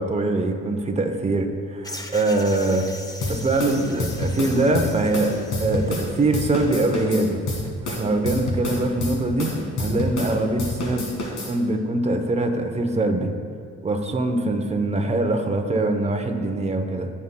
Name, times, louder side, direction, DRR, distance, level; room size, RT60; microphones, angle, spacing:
voice 1, 0.0-2.9 3.3-7.4 7.8-9.5 9.8-11.1 11.4-13.3 13.8-17.1, right 2 dB, 20° right, 5 dB, 0.7 m, -23 dB
sound 1, 1.8-6.6, left 2 dB, 10° left, 0.6 m, -41 dB
sound 2, 3.2-6.1 6.3-10.3 10.6-11.5, left 1 dB, 80° left, 2.0 m, -28 dB
14.5 x 5.5 x 2.2 m, 2.2 s
cardioid pair, 90°, 30 cm